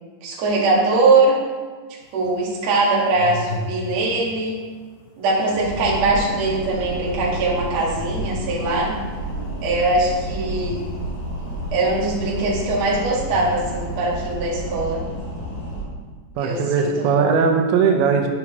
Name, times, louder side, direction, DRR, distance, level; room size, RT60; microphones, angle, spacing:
voice 1, 0.2-1.4 2.1-4.6 5.2-9.0 9.6-10.9 11.7-15.0 16.4-17.2, right 2 dB, 50° right, -4 dB, 2.2 m, -21 dB
sound 1, 2.0-14.4, left 3 dB, 80° left, 2.0 m, -39 dB
sound 2, 5.6-15.8, right 1 dB, 40° left, 3.1 m, -30 dB
voice 2, 16.4-18.3, right 5 dB, 85° right, 3 dB, 3.0 m, -19 dB
12.0 x 5.8 x 3.0 m, 1.5 s
omnidirectional pair, 5.1 m